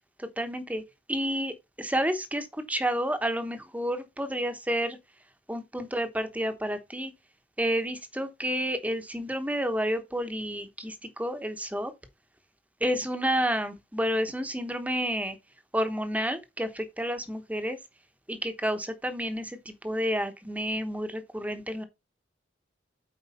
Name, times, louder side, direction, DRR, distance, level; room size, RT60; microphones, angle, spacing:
voice 1, 0.2-0.8 1.1-5.0 5.5-7.1 7.6-11.9 12.8-15.4 15.7-17.8 18.3-21.8, equal, 10° right, 1.0 m, -30 dB
8.3 x 4.6 x 4.2 m
head